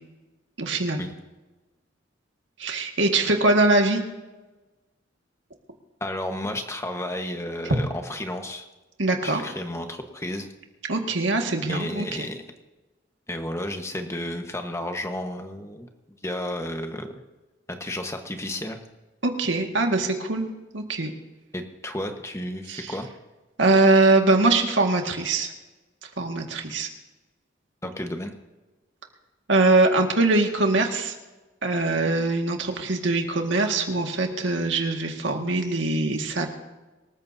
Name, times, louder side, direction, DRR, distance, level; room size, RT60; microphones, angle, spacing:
voice 1, 0.6-1.0 2.6-4.0 9.0-9.4 10.9-12.3 19.2-21.1 22.7-22.9 23.6-25.5 26.2-26.9 29.5-31.1 31.6-36.5, right 2 dB, 75° right, 3 dB, 1.9 m, -22 dB
voice 2, 6.0-8.6 9.2-10.5 11.7-12.4 13.3-15.9 16.2-17.1 17.7-18.8 21.5-23.1 27.8-28.3, left 1 dB, 15° left, 5 dB, 1.3 m, -32 dB
26.0 x 14.0 x 2.8 m, 1.2 s
head